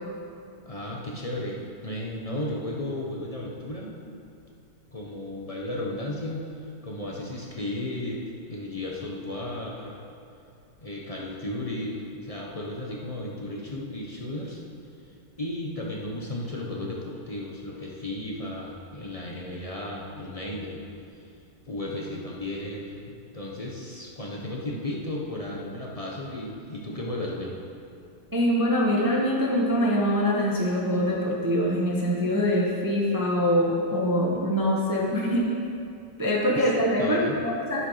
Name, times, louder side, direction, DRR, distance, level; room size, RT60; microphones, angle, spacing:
voice 1, 0.6-3.9 4.9-6.4 6.8-10.0 10.8-14.6 15.4-20.8 21.7-27.5 36.5-36.7 37.0-37.4, left 1 dB, 30° left, -3 dB, 0.6 m, -34 dB
voice 2, 28.3-35.5 36.2-37.9, equal, 15° right, -3 dB, 0.8 m, -24 dB
9.7 x 8.0 x 5.6 m, 2.6 s
omnidirectional pair, 2.3 m